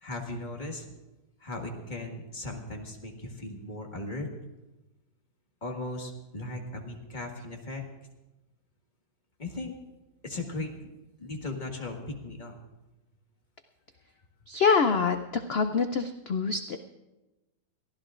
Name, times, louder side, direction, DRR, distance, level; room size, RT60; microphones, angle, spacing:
voice 1, 0.0-0.9 1.4-4.3 5.6-7.8 9.4-9.7 10.2-10.9 11.2-12.6, left 2 dB, 25° left, 1 dB, 1.7 m, -37 dB
voice 2, 14.5-16.8, left 5 dB, 80° left, 7 dB, 0.5 m, -25 dB
22.5 x 15.0 x 2.5 m, 1.0 s
omnidirectional pair, 1.9 m